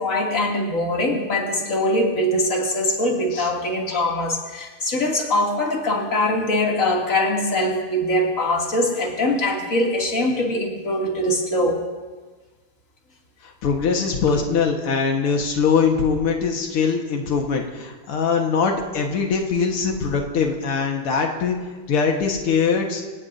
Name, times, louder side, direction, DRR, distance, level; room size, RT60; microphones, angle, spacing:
voice 1, 0.0-11.8 14.3-14.4, left 1 dB, 35° left, -2 dB, 3.0 m, -22 dB
voice 2, 13.6-21.6 21.9-23.0, left 5 dB, 90° left, 2 dB, 2.4 m, -22 dB
26.0 x 18.0 x 2.7 m, 1.3 s
omnidirectional pair, 2.4 m